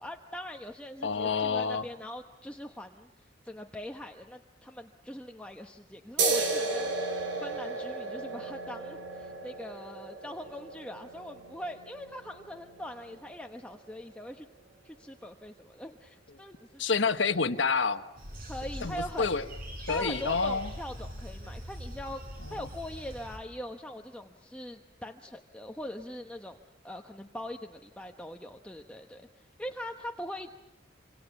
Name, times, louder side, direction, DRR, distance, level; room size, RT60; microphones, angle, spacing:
voice 1, 0.0-14.5 14.8-16.8 18.5-19.3 19.9-22.2 22.5-30.5, left 1 dB, 5° left, 3 dB, 1.0 m, -42 dB
voice 2, 1.0-1.8 16.8-18.0 18.8-19.4 19.9-20.7, left 4 dB, 90° left, 7 dB, 1.3 m, -28 dB
sound 1, 6.2-13.3, right 3 dB, 90° right, 5.4 m, -34 dB
sound 2, 18.2-23.4, equal, 50° right, 7.5 m, -42 dB
26.5 x 26.5 x 7.1 m, 0.98 s
head